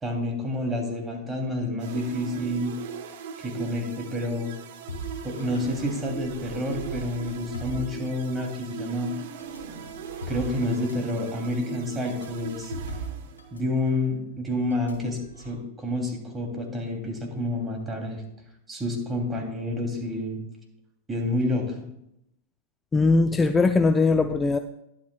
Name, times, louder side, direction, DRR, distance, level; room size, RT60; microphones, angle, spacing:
voice 1, 0.0-2.7 3.4-4.5 5.2-9.1 10.3-12.7 13.5-18.2 18.7-20.4 21.1-21.9, left 1 dB, 15° right, 1 dB, 2.9 m, -29 dB
sound 1, 1.8-13.7, right 7 dB, 65° right, 1.1 m, -40 dB
sound 2, 4.9-8.7 9.4-13.6 13.9-14.1 14.7-15.5, right 2 dB, 90° left, 2.1 m, -40 dB
voice 2, 22.9-24.6, left 3 dB, 15° left, 9 dB, 0.5 m, -20 dB
11.5 x 11.5 x 2.3 m, 0.81 s
hypercardioid pair, 100°, 0 cm